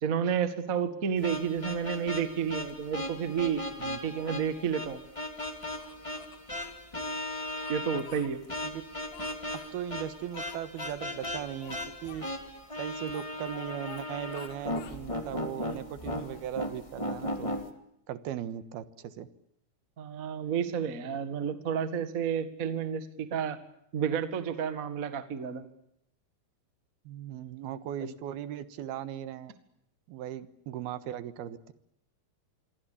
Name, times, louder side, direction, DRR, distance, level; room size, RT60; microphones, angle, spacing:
voice 1, 0.0-3.6 4.0-5.0 7.7-8.4 20.0-23.6 23.9-25.7 28.0-28.1, right 7 dB, 40° right, 11 dB, 1.3 m, -31 dB
sound 1, 1.2-17.7, left 1 dB, 10° left, 1.5 m, -37 dB
Speech, 5.4-6.8 7.4-8.6 9.1-9.7 10.3-10.9 11.2-11.3 11.6-12.4 13.1-14.1 14.3-15.0 15.5-16.9, left 8 dB, 70° left, 4.1 m, -51 dB
voice 2, 9.7-12.3 12.8-17.5 18.1-19.3 27.1-29.5 30.1-31.7, right 10 dB, 80° right, 14 dB, 3.1 m, -38 dB
27.0 x 22.5 x 8.5 m, 0.76 s
omnidirectional pair, 4.5 m